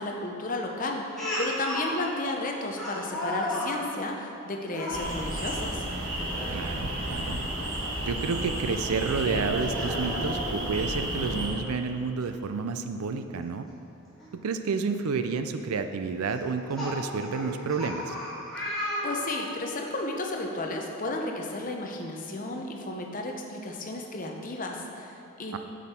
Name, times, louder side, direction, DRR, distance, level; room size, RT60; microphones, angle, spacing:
voice 1, 0.0-5.8 18.6-18.7 19.0-25.6, left 2 dB, 35° left, 1 dB, 0.7 m, -33 dB
Speech, 1.2-1.9 2.8-3.7 4.7-5.0 6.2-6.5 6.9-7.0 8.7-8.8 9.6-10.5 11.8-11.9 12.2-12.3 14.2-14.3 14.9-15.2 16.3-19.6, left 1 dB, ahead, 2.0 m, -34 dB
sound 1, 4.9-11.5, right 1 dB, 55° right, 1.6 m, -32 dB
voice 2, 6.5-7.4 8.0-13.7 14.4-18.1 25.5-25.6, right 4 dB, 80° right, 8 dB, 0.4 m, -30 dB
7.2 x 7.1 x 4.3 m, 2.8 s
head